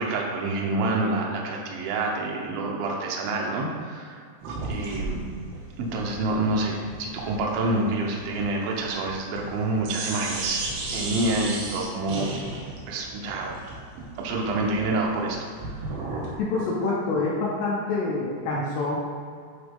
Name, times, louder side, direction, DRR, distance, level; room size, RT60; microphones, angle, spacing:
voice 1, 0.0-4.2 4.7-5.2 5.8-10.6 10.9-12.3 12.9-13.6 14.2-15.5, right 2 dB, 85° right, -1 dB, 2.1 m, -27 dB
sound 1, 4.4-9.6 9.8-16.4, right 2 dB, 70° right, 3.0 m, -35 dB
voice 2, 16.4-19.0, left 3 dB, 75° left, -4 dB, 2.7 m, -26 dB
11.5 x 4.1 x 3.7 m, 2.2 s
omnidirectional pair, 5.6 m